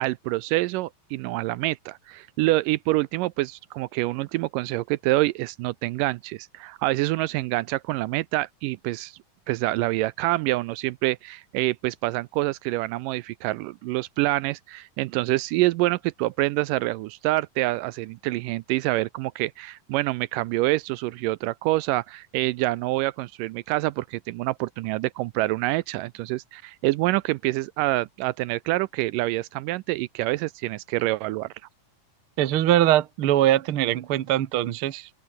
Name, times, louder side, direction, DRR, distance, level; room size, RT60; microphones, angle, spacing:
voice 1, 0.0-9.1 9.5-31.5, right 18 dB, 80° right, 2.1 m, -26 dB
voice 2, 32.4-35.1, right 13 dB, 60° right, 1.4 m, -22 dB
open air
omnidirectional pair, 4.0 m